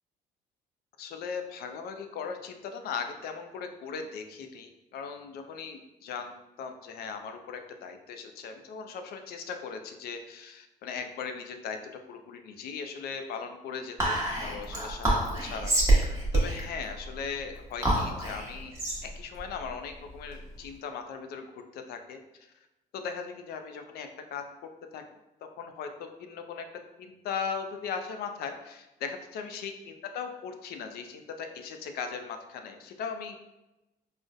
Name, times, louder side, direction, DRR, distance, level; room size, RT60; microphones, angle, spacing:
voice 1, 1.0-6.3 6.6-11.8 12.1-18.7 19.0-22.5 22.9-24.4 24.9-25.0 25.6-26.6 27.0-33.5, left 6 dB, 65° left, 6 dB, 0.4 m, -38 dB
Whispering, 14.0-20.6, right 1 dB, 15° right, 0.9 m, -28 dB
3.8 x 2.1 x 2.4 m, 0.98 s
cardioid pair, 110°, 17 cm